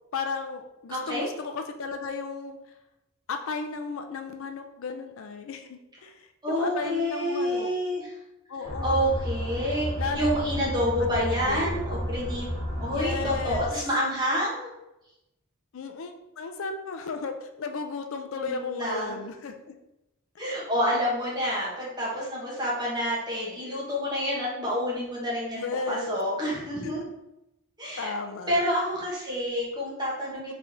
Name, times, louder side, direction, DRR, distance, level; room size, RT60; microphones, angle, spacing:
voice 1, 0.1-2.6 3.3-7.7 8.5-9.2 10.0-10.3 11.0-11.8 12.9-13.7 15.7-19.7 25.5-26.2 26.8-26.9 28.0-28.6 30.3-30.5, left 4 dB, 65° left, 6 dB, 0.4 m, -34 dB
voice 2, 0.9-1.3 6.4-8.1 8.8-12.5 12.8-14.8 18.4-19.1 20.4-27.0 27.8-28.1 28.5-30.5, equal, 20° right, -5 dB, 1.3 m, -28 dB
sound 1, 8.6-13.7, equal, 30° left, 0.9 m, -32 dB
3.8 x 3.3 x 3.6 m, 0.91 s
head